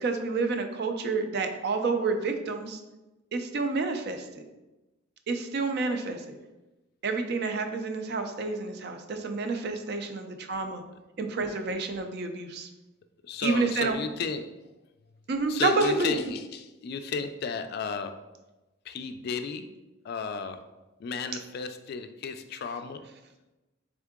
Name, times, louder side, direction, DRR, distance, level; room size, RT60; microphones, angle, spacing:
voice 1, 0.0-2.8 3.3-4.2 5.3-6.4 7.0-10.8 11.2-12.7 13.4-13.9 15.3-16.1, right 3 dB, 55° right, 6 dB, 0.4 m, -29 dB
voice 2, 13.2-14.5 15.5-18.2 18.9-19.7 20.0-20.6 21.0-23.0, left 5 dB, 55° left, 8 dB, 0.3 m, -33 dB
3.7 x 3.6 x 3.6 m, 1.1 s
head